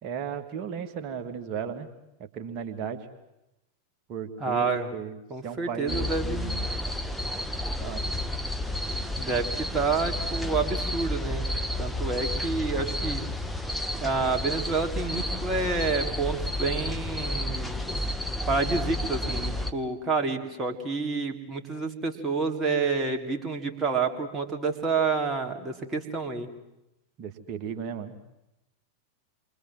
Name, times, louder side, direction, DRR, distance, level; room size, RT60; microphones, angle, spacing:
voice 1, 0.0-1.9 2.3-3.1 4.1-5.2 5.4-6.6 7.8-8.0 27.2-28.2, right 7 dB, 40° right, 6 dB, 2.6 m, -35 dB
voice 2, 4.4-4.9 5.3-6.6 9.2-11.5 11.8-13.2 14.0-17.9 18.5-26.5, right 4 dB, 20° right, 3 dB, 3.5 m, -28 dB
sound 1, 5.9-19.7, left 1 dB, ahead, 1.5 m, -31 dB
29.0 x 24.5 x 7.7 m, 0.91 s
figure-of-eight pair, 90°, 0 cm